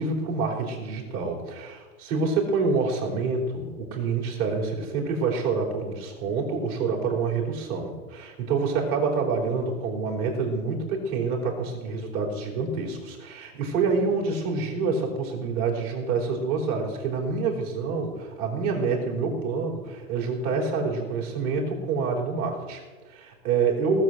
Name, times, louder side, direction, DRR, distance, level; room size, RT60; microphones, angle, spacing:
voice 1, 0.0-24.0, right 4 dB, 35° right, -1 dB, 4.3 m, -27 dB
18.5 x 7.6 x 7.9 m, 1.3 s
hypercardioid pair, 155°, 43 cm